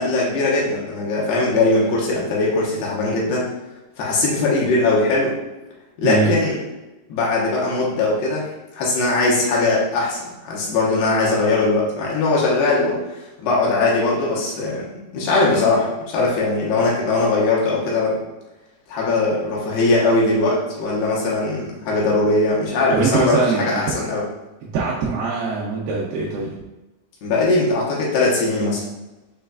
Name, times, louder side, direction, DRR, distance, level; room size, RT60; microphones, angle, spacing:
voice 1, 0.0-3.5 4.0-5.3 6.0-6.6 7.1-8.5 8.7-13.0 13.4-14.9 15.1-18.2 18.9-24.2 27.2-28.8, left 2 dB, 75° left, -4 dB, 2.9 m, -20 dB
voice 2, 6.0-6.4 22.9-23.8 24.6-26.5, right 4 dB, 80° right, -5 dB, 2.0 m, -22 dB
7.0 x 3.1 x 2.4 m, 1.0 s
omnidirectional pair, 4.8 m